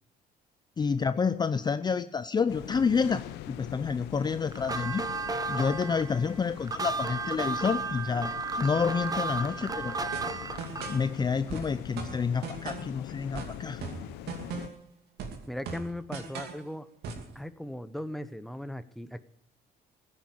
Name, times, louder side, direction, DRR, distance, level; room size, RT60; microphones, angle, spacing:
voice 1, 0.8-5.0 5.5-10.0 10.9-13.8, left 5 dB, 25° left, 12 dB, 0.6 m, -29 dB
sound 1, 2.5-14.7, left 14 dB, 90° left, 0.9 m, -43 dB
sound 2, 4.5-11.1, right 3 dB, 20° right, 1.1 m, -33 dB
sound 3, 10.1-11.1 11.5-13.0 13.3-14.9 15.2-16.6 17.0-17.3, right 5 dB, 75° right, 2.7 m, -39 dB
voice 2, 15.5-16.9 17.3-19.2, left 1 dB, ahead, 12 dB, 0.9 m, -38 dB
15.5 x 9.6 x 8.6 m, 0.72 s
cardioid pair, 110°, 17 cm